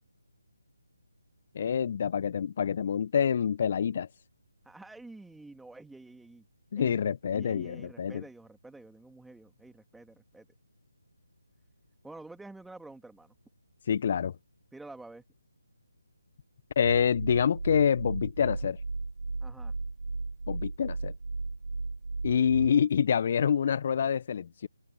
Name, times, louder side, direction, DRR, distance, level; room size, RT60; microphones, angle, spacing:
voice 1, 1.5-4.1 6.7-8.2 13.9-14.3 16.7-18.8 20.5-21.1 22.2-24.7, left 7 dB, 40° left, 1.3 m, -27 dB
voice 2, 4.6-6.4 6.8-7.0 7.3-10.4 12.0-13.3 14.7-15.2 19.4-19.7, right 2 dB, ahead, 3.1 m, -48 dB
sound 1, 16.8-22.7, right 3 dB, 65° right, 3.7 m, -35 dB
figure-of-eight pair, 150°, 0 cm